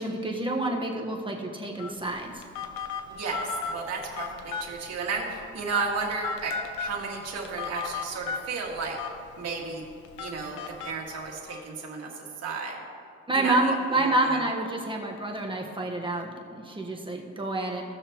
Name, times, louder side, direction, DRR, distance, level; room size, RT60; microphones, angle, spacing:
voice 1, 0.0-2.4 13.3-17.8, right 2 dB, 15° right, 0 dB, 1.4 m, -28 dB
Telephone, 1.8-11.6, left 5 dB, 85° left, 0.9 m, -37 dB
voice 2, 3.1-9.0 9.4-9.8 10.2-12.1 12.4-12.8 13.3-14.4, right 4 dB, 55° right, -2 dB, 2.2 m, -33 dB
17.5 x 6.5 x 3.1 m, 2.4 s
cardioid pair, 90°, 30 cm